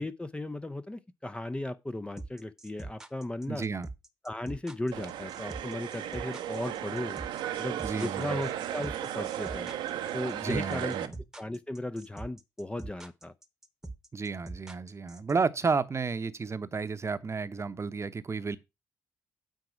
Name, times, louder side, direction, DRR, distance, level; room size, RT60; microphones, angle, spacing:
voice 1, 0.0-3.7 4.2-7.2 7.6-9.8 10.1-11.0 11.4-13.3, left 1 dB, 10° left, 0.6 m, -36 dB
sound 1, 2.2-15.3, right 2 dB, 5° right, 1.1 m, -43 dB
voice 2, 3.5-3.9 7.8-8.4 10.4-11.2 14.1-18.6, right 4 dB, 30° right, 0.8 m, -32 dB
sound 2, 4.9-11.1, right 11 dB, 60° right, 0.8 m, -35 dB
9.3 x 4.7 x 5.8 m
figure-of-eight pair, 40°, 9 cm